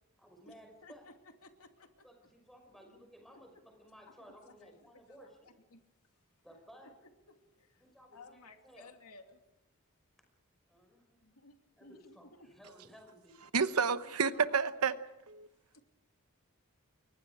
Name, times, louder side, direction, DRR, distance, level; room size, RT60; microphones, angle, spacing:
voice 1, 0.2-1.1 2.0-5.5 6.4-6.9 7.8-8.9 10.7-11.2 11.8-13.3, equal, ahead, 5.6 m, -57 dB
voice 2, 0.8-1.9 3.3-3.6 4.2-5.2 5.4-5.8 6.8-7.8 8.1-9.4 11.2-12.5 14.0-14.6 15.7-15.8, left 2 dB, 85° left, 2.6 m, -58 dB
voice 3, 13.5-15.0 15.3-15.5, right 5 dB, 90° right, 1.0 m, -30 dB
29.5 x 23.0 x 4.9 m
head